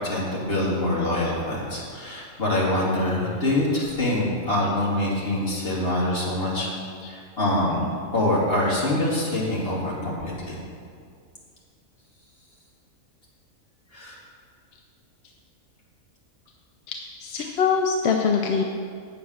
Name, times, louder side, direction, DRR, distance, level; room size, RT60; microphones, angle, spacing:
voice 1, 0.0-6.7 7.1-7.9 8.1-10.6 13.9-14.2, left 1 dB, 45° left, -6 dB, 2.6 m, -25 dB
voice 2, 16.9-18.6, left 6 dB, 60° left, 2 dB, 0.8 m, -24 dB
8.7 x 7.1 x 6.3 m, 2.2 s
omnidirectional pair, 1.5 m